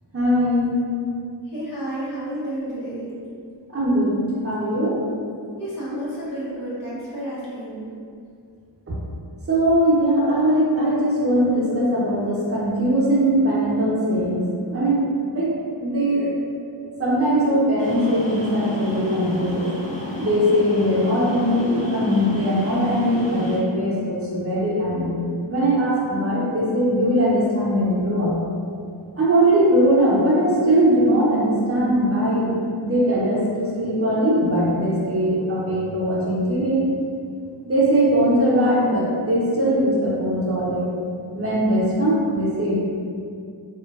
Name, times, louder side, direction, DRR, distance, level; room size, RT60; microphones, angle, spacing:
voice 1, 0.1-0.7 3.7-5.0 8.9-9.0 9.5-15.1 15.3-15.5 15.8-16.3 17.0-19.7 20.2-25.2 25.5-28.4 29.2-36.8 37.6-40.9 41.3-42.8, equal, 30° right, -7 dB, 0.6 m, -20 dB
voice 2, 1.4-3.1 5.6-7.9, right 1 dB, 45° left, -9 dB, 0.8 m, -31 dB
sound 1, 17.8-23.6, left 1 dB, 15° left, 0.4 m, -32 dB
2.4 x 2.2 x 2.2 m, 2.3 s
wide cardioid pair, 105°, 46 cm